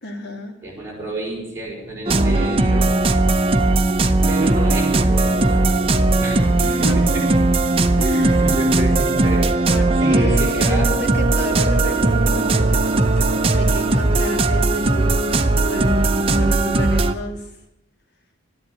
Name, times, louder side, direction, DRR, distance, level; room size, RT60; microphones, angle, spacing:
voice 1, 0.0-0.6 6.6-7.0 7.9-8.4 9.7-13.3 13.6-17.5, equal, 55° left, 3 dB, 2.2 m, -31 dB
voice 2, 0.6-2.9 4.3-5.9 6.2-7.2 8.4-9.5 10.0-10.9, right 1 dB, 15° right, -5 dB, 5.0 m, -28 dB
sound 1, 1.7-3.9 4.2-9.4 10.3-15.8, left 1 dB, 30° left, 1.9 m, -42 dB
sound 2, 2.1-17.1, right 2 dB, 30° right, 0.6 m, -18 dB
sound 3, 8.9-13.8, right 2 dB, 45° right, 1.9 m, -35 dB
13.0 x 11.0 x 8.2 m, 0.87 s
head